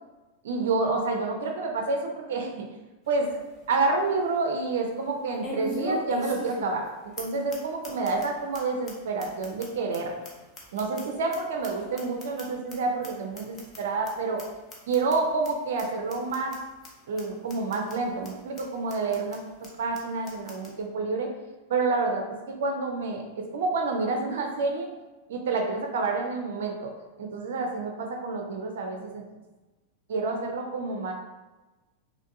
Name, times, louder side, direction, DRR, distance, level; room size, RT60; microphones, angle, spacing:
voice 1, 0.4-2.6 3.1-3.3 3.7-6.8 7.2-10.1 10.7-14.4 14.9-16.6 17.1-19.4 19.8-21.3 21.7-24.9 25.3-26.9 27.2-29.2 30.1-31.1, right 3 dB, 60° right, 3 dB, 0.4 m, -28 dB
sound 1, 3.1-3.2 3.6-3.7 5.4-6.9 7.2-7.3 7.5-7.6 7.8-8.3 8.5-8.6 8.9-9.0 9.2-11.4 11.6-12.7 13.0-13.1 13.4-13.8 14.1-14.2 14.4-14.5 14.7-15.2 15.4-15.5 15.8-15.9 16.1-16.6 16.8-16.9 17.2-17.3 17.5-17.9 18.2-18.3 18.6-18.7 18.9-19.4 19.6-19.7 19.9-20.0 20.3-20.7, left 1 dB, 30° left, 0.8 m, -38 dB
3.4 x 2.5 x 2.6 m, 1.1 s
figure-of-eight pair, 90°, 0 cm